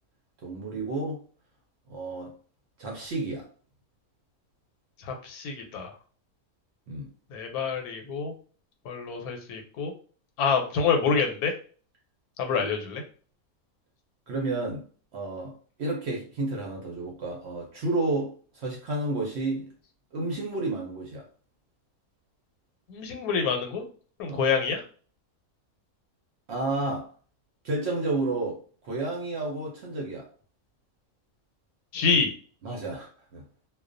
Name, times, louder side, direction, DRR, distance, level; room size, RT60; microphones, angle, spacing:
voice 1, 0.4-1.2 1.9-2.3 2.8-3.5 6.9-7.1 14.3-14.9 15.1-19.7 20.1-21.3 24.3-24.5 26.5-27.1 27.6-30.3 32.6-33.4, right 2 dB, 65° right, 0 dB, 0.7 m, -31 dB
voice 2, 5.0-5.9 7.3-8.3 8.8-9.9 10.4-11.5 12.4-13.0 22.9-23.8 24.2-24.8 31.9-32.3, left 5 dB, 85° left, 4 dB, 1.1 m, -27 dB
2.3 x 2.2 x 2.5 m, 0.41 s
omnidirectional pair, 1.5 m